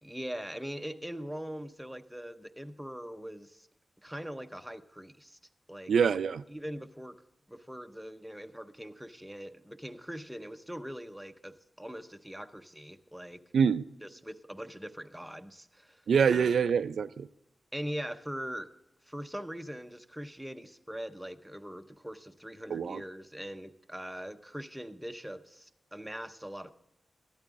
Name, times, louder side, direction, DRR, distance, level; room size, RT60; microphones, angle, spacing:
voice 1, 0.0-3.7 4.0-5.4 5.7-5.9 6.5-7.2 7.5-13.4 14.0-16.0 16.3-16.6 17.7-18.7 19.1-26.7, equal, 5° right, 0.6 m, -42 dB
voice 2, 5.9-6.4 13.5-13.8 16.1-17.3 22.7-23.0, right 6 dB, 90° right, 0.4 m, -25 dB
13.0 x 12.5 x 3.6 m
wide cardioid pair, 175°, 0 cm